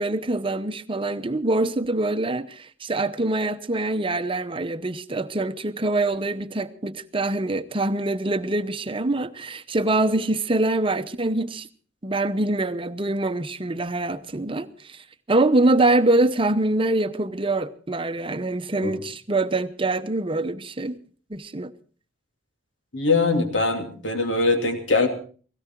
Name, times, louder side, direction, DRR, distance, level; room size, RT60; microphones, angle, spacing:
voice 1, 0.0-11.7 12.0-15.0 15.3-21.0 21.3-21.7, right 2 dB, 30° right, 0.8 m, -24 dB
voice 2, 22.9-25.1, left 3 dB, 75° left, 2.6 m, -22 dB
17.5 x 17.0 x 4.5 m
head